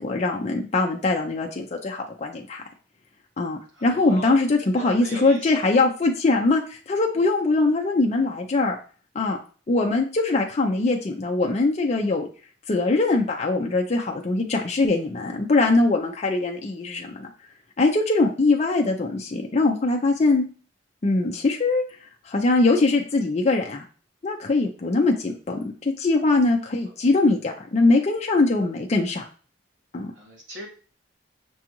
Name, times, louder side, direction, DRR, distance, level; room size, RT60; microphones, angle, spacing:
voice 1, 0.0-2.6 3.4-8.8 9.1-9.4 9.7-12.2 12.7-17.3 17.8-20.5 21.0-21.8 22.3-23.8 24.2-29.3 29.9-30.1, left 3 dB, 35° left, 2 dB, 0.5 m, -22 dB
voice 2, 3.7-4.5 4.8-5.5 26.6-26.7 30.1-30.7, left 1 dB, 85° right, -1 dB, 1.3 m, -39 dB
6.1 x 2.4 x 2.9 m, 0.38 s
head